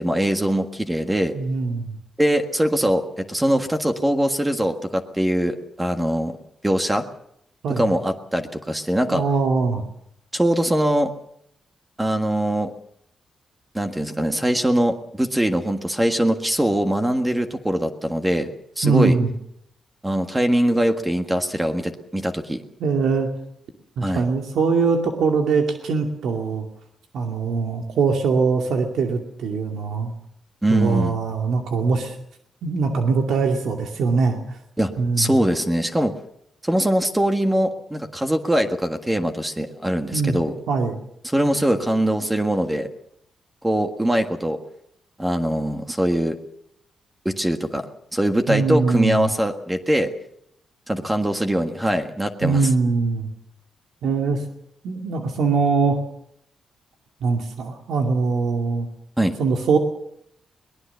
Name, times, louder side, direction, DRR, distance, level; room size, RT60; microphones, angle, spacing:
voice 1, 0.0-1.3 2.2-6.4 6.6-7.1 7.7-9.2 10.3-11.1 12.0-12.7 13.7-18.5 18.8-19.2 20.0-22.6 24.0-24.2 30.6-31.2 34.8-36.2 36.6-40.5 41.2-42.9 43.6-44.6 45.2-46.4 47.3-47.9 48.1-50.1 50.9-52.7 59.2-59.4, right 1 dB, 10° right, 6 dB, 1.6 m, -22 dB
voice 2, 1.3-1.9 7.6-7.9 9.1-9.8 18.8-19.3 22.8-23.3 24.0-26.7 27.1-30.1 30.7-32.2 32.6-34.6 35.0-35.3 40.1-40.4 40.7-41.0 48.5-49.3 52.4-53.3 54.0-54.4 54.8-56.0 57.2-58.9 59.4-59.8, right 4 dB, 85° right, 3 dB, 2.4 m, -22 dB
22.5 x 19.5 x 6.9 m, 0.72 s
wide cardioid pair, 140°, 0 cm